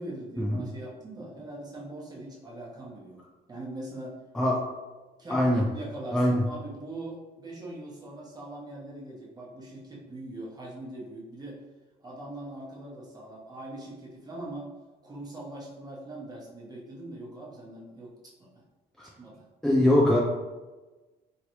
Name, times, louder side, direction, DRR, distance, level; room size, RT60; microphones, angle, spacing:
voice 1, 0.0-3.2 3.5-4.1 5.2-5.5 5.7-11.6 12.0-14.7 15.0-18.1 18.4-18.5 19.2-19.4, right 1 dB, 25° right, -4 dB, 1.0 m, -41 dB
voice 2, 5.3-5.6 6.1-6.4 19.0-19.1 19.6-20.2, left 1 dB, 5° left, -3 dB, 0.4 m, -22 dB
3.1 x 2.9 x 2.7 m, 1.2 s
cardioid pair, 110°, 17 cm